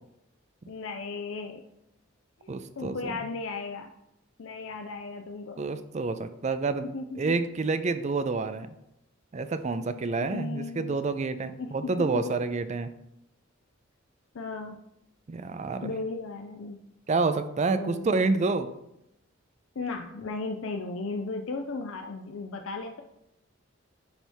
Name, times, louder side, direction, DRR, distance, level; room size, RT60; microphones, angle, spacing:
voice 1, 0.7-1.6 2.4-3.9 4.4-5.6 6.9-7.3 10.2-11.0 11.6-12.3 14.3-14.8 15.8-16.8 17.7-18.2 19.8-23.0, left 3 dB, 70° left, 4 dB, 0.5 m, -35 dB
voice 2, 2.5-3.2 5.6-6.9 7.2-8.8 9.3-12.9 15.3-15.9 17.1-18.7, right 3 dB, 35° right, 11 dB, 0.4 m, -28 dB
10.5 x 3.4 x 4.5 m, 0.84 s
head